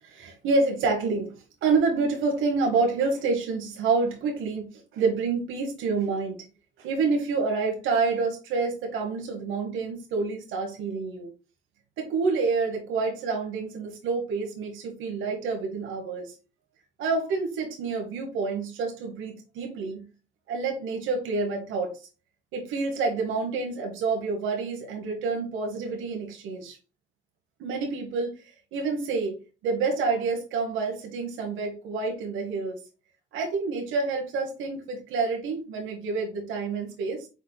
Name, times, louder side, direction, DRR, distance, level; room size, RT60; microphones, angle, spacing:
voice 1, 0.0-6.4 6.8-11.3 12.0-16.4 17.0-20.0 20.5-22.0 22.5-26.8 27.6-29.4 29.6-32.8 33.3-37.3, right 4 dB, 90° right, 2 dB, 1.0 m, -28 dB
5.1 x 4.1 x 2.2 m, 0.32 s
cardioid pair, 90°, 20 cm